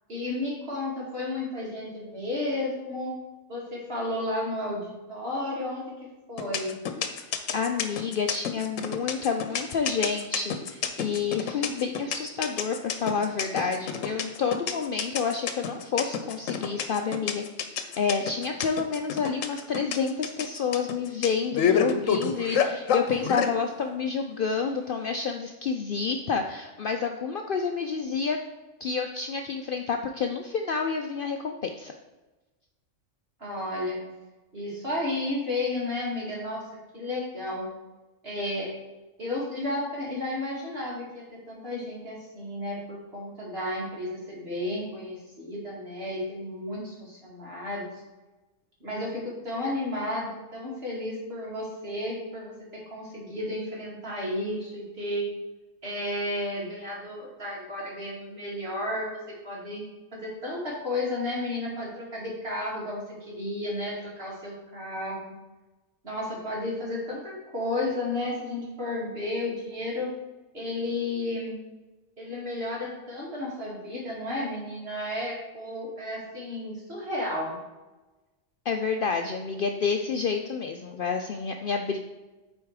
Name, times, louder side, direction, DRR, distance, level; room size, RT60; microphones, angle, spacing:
voice 1, 0.1-3.1 3.5-5.9 6.3-6.7 33.4-34.0 34.5-36.6 36.9-37.7 38.2-38.7 39.2-47.9 48.8-55.3 55.8-59.1 59.4-59.8 60.1-65.3 66.0-70.1 70.5-71.6 72.2-77.6, left 1 dB, 50° right, -5 dB, 2.7 m, -32 dB
sound 1, 6.4-23.5, left 7 dB, 85° left, 1.1 m, -28 dB
voice 2, 7.2-17.4 18.0-28.4 28.8-31.9 78.7-82.0, left 5 dB, 60° left, 4 dB, 0.6 m, -29 dB
8.3 x 4.3 x 4.8 m, 1.1 s
omnidirectional pair, 1.3 m